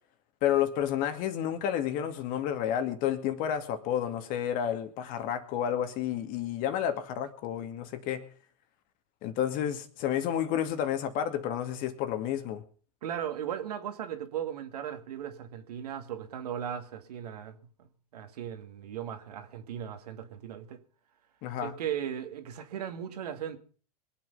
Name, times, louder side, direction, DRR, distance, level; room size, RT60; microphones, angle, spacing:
voice 1, 0.4-8.2 9.2-12.6 21.4-21.7, left 10 dB, 40° left, 2.3 m, -30 dB
voice 2, 13.0-17.9 18.1-20.8 21.6-23.6, right 9 dB, 70° right, 2.3 m, -37 dB
23.5 x 8.4 x 5.5 m
hypercardioid pair, 110°, 21 cm